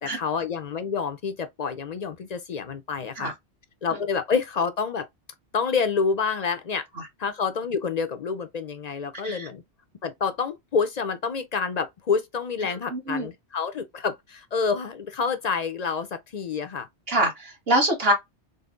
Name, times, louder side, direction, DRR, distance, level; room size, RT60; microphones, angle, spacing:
voice 1, 0.0-3.3 3.8-5.1 5.5-6.9 7.2-9.6 10.0-16.9, left 5 dB, 50° left, 0.5 m, -28 dB
voice 2, 12.9-13.3 17.1-18.1, right 1 dB, 55° right, 1.6 m, -24 dB
4.0 x 2.0 x 3.6 m
omnidirectional pair, 1.2 m